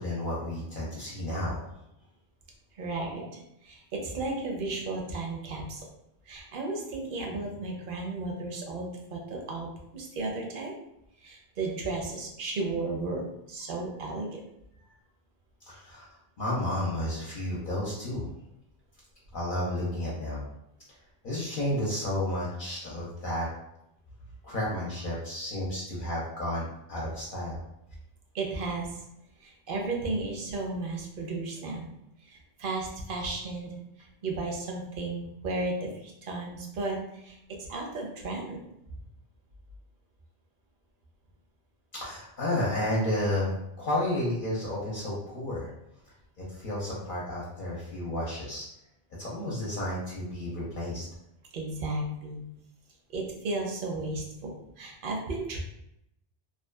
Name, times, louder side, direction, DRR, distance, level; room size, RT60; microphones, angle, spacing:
voice 1, 0.0-1.7 15.6-16.1 16.4-18.3 19.3-20.4 21.2-23.5 24.4-27.6 41.9-45.7 46.0-48.7 49.2-51.0, left 1 dB, 60° left, -6 dB, 0.7 m, -32 dB
voice 2, 2.7-3.2 3.6-5.8 6.3-10.7 11.2-13.2 13.5-14.4 28.3-29.0 29.4-31.9 32.2-33.7 34.0-38.6 51.5-52.4 53.1-54.5 54.8-55.6, right 2 dB, 65° right, 0 dB, 0.7 m, -34 dB
2.6 x 2.3 x 2.2 m, 0.81 s
omnidirectional pair, 1.0 m